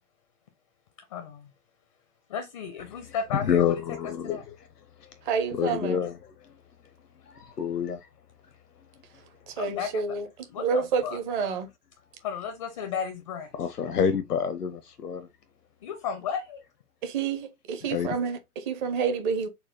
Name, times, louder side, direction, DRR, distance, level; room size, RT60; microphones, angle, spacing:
voice 1, 1.1-1.5 2.3-3.7 4.2-4.4 9.6-10.0 10.5-11.2 12.2-13.5 15.8-16.6, left 7 dB, 25° left, 0.4 m, -34 dB
voice 2, 3.1-4.6 5.0-5.1 5.5-6.5 7.3-8.0 13.5-15.3 17.9-18.2, left 7 dB, 90° left, 0.6 m, -28 dB
voice 3, 5.3-6.0 9.5-10.3 10.6-11.7 17.0-19.5, right 5 dB, 30° right, 0.8 m, -29 dB
4.2 x 2.1 x 3.6 m
figure-of-eight pair, 115°, 45 cm